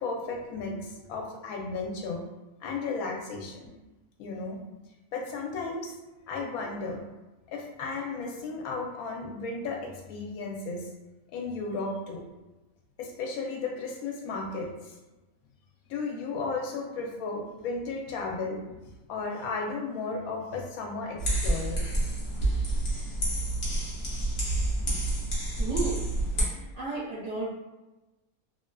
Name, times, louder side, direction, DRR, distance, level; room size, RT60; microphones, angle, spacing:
voice 1, 0.0-2.2 2.6-3.8 4.2-4.6 5.1-5.9 6.3-7.0 7.5-10.9 11.3-12.2 13.0-14.9 15.9-18.6 19.1-22.0, left 3 dB, 85° left, 1 dB, 1.0 m, -34 dB
sound 1, 21.2-26.4, right 1 dB, 50° left, 1.0 m, -28 dB
voice 2, 25.6-26.0 26.5-27.5, right 3 dB, 60° right, -8 dB, 0.9 m, -33 dB
2.4 x 2.4 x 2.2 m, 1.1 s
omnidirectional pair, 1.5 m